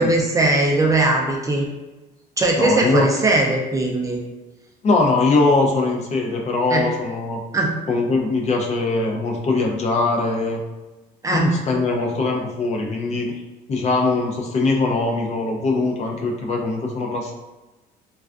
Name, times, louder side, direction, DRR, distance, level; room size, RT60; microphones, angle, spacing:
voice 1, 0.0-1.7 2.4-4.2 6.7-6.8 7.5-7.7 11.2-11.4, right 2 dB, 20° right, -1 dB, 0.4 m, -19 dB
voice 2, 2.6-3.1 4.8-7.4 7.9-10.6 11.3-13.4 13.7-17.3, left 3 dB, 40° left, 1 dB, 0.4 m, -21 dB
2.3 x 2.3 x 2.3 m, 1.1 s
cardioid pair, 110°, 17 cm